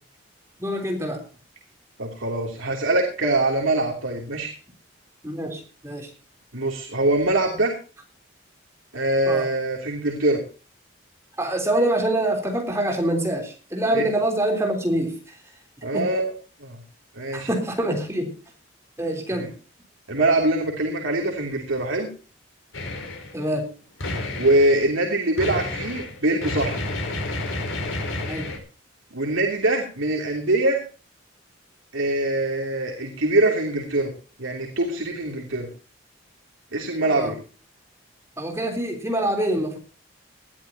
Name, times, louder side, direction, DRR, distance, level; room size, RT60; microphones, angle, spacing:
voice 1, 0.6-1.2 5.2-6.1 9.2-9.5 11.4-15.4 15.9-16.1 17.3-18.3 19.0-19.5 23.3-23.6 28.3-28.5 37.0-37.3 38.4-39.8, right 1 dB, 15° right, 3 dB, 3.5 m, -25 dB
voice 2, 2.0-4.6 6.5-7.7 8.9-10.4 13.9-14.0 15.8-16.3 16.6-16.8 17.1-17.5 19.3-19.5 20.1-22.1 24.4-26.9 29.1-30.8 31.9-34.1 34.4-35.7 36.7-37.4, right 2 dB, 80° right, 0 dB, 2.9 m, -23 dB
sound 1, 22.7-23.3 24.0-24.8 25.4-28.6, left 2 dB, 85° left, 4.4 m, -30 dB
19.5 x 13.0 x 2.8 m, 0.36 s
head